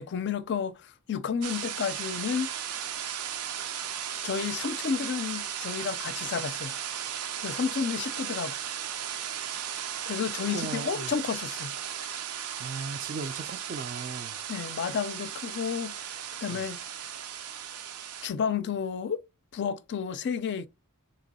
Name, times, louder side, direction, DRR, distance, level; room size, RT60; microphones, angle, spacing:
voice 1, 0.0-2.5 4.2-6.7 7.4-8.6 10.1-11.7 14.5-16.0 16.4-16.8 18.2-19.2 19.5-20.7, left 6 dB, 50° left, 0.4 m, -31 dB
sound 1, 1.4-18.3, right 9 dB, 90° right, 0.5 m, -36 dB
voice 2, 10.5-11.1 12.6-14.4 16.5-16.6, right 4 dB, 40° right, 0.3 m, -37 dB
3.0 x 2.9 x 4.0 m
head